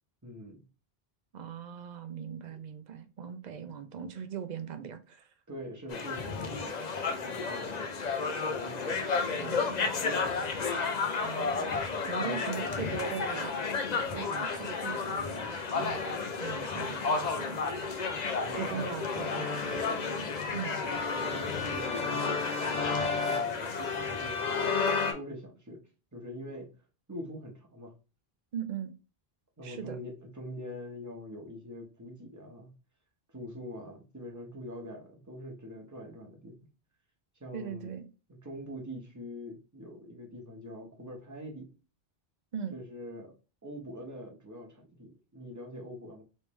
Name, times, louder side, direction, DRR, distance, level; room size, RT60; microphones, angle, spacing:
voice 1, 0.2-0.6 2.5-2.6 3.5-3.6 5.5-8.2 8.5-10.5 12.2-12.5 18.4-18.9 20.8-22.5 23.2-25.8 26.1-26.7 27.1-27.9 29.6-32.7 33.3-36.5 37.4-37.9 38.3-41.7 42.7-43.3 43.6-46.2, equal, 20° right, 1.0 m, -44 dB
voice 2, 1.3-5.3 9.2-10.1 11.2-11.7 12.1-13.7 13.9-17.6 18.5-20.8 28.5-29.0 29.6-30.0 37.5-38.1 42.5-42.8, right 8 dB, 55° right, 0.6 m, -40 dB
sound 1, 5.9-25.1, left 4 dB, 50° left, 0.7 m, -32 dB
3.3 x 3.2 x 3.1 m
omnidirectional pair, 1.0 m